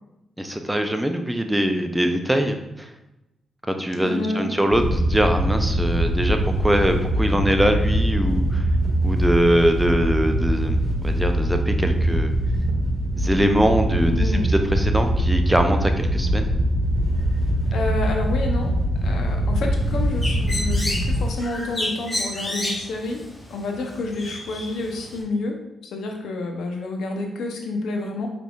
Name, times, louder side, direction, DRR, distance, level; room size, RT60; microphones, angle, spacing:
voice 1, 0.4-2.9 3.7-8.7 9.0-10.8 11.0-12.3 13.2-16.5, right 1 dB, 10° right, 5 dB, 0.6 m, -22 dB
voice 2, 4.0-4.5 14.1-14.5 17.7-18.7 19.0-23.2 23.5-25.6 25.9-28.3, left 2 dB, 75° left, 2 dB, 0.7 m, -29 dB
Wind / Boat Water vehicle, 4.7-21.2, right 1 dB, 35° right, 1.4 m, -22 dB
Bird, 19.8-25.2, left 1 dB, 25° left, 1.1 m, -31 dB
4.8 x 3.4 x 2.4 m, 0.94 s
supercardioid pair, 50°, 0 cm